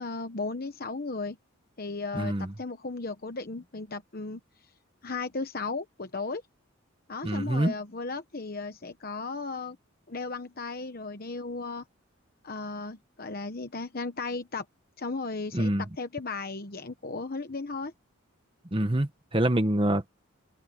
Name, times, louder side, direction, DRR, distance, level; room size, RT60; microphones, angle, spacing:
voice 1, 0.0-1.4 1.8-4.4 5.0-6.4 7.1-9.8 10.1-11.8 12.4-14.6 15.0-15.7 16.0-17.9, left 3 dB, 45° left, 1.0 m, -35 dB
voice 2, 2.1-2.5 7.2-7.7 15.5-15.8 18.7-20.0, right 1 dB, 25° right, 1.2 m, -26 dB
open air
head